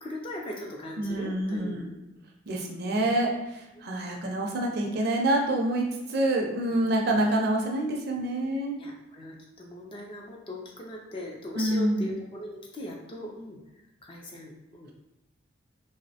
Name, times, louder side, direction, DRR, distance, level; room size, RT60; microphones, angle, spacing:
voice 1, 0.0-2.0 3.0-3.1 3.8-4.3 5.0-5.1 6.7-7.2 8.8-13.6 14.0-14.9, left 1 dB, 25° left, -1 dB, 0.3 m, -40 dB
voice 2, 1.0-1.9 2.5-3.3 3.8-5.8 6.1-8.8 11.6-12.1, right 1 dB, 50° right, 0 dB, 0.4 m, -26 dB
2.6 x 2.0 x 2.7 m, 0.98 s
head